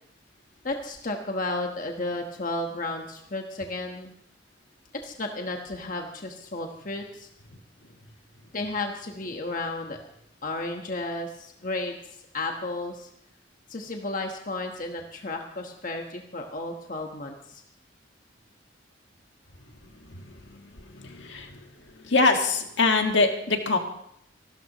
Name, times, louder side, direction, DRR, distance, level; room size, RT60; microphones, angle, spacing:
voice 1, 0.6-4.1 5.0-7.3 8.5-10.0 10.4-13.1 13.7-17.6, left 2 dB, 45° left, 3 dB, 1.3 m, -33 dB
voice 2, 21.0-21.5 22.0-23.8, left 3 dB, 75° left, 3 dB, 1.8 m, -23 dB
27.0 x 13.0 x 3.1 m, 0.72 s
head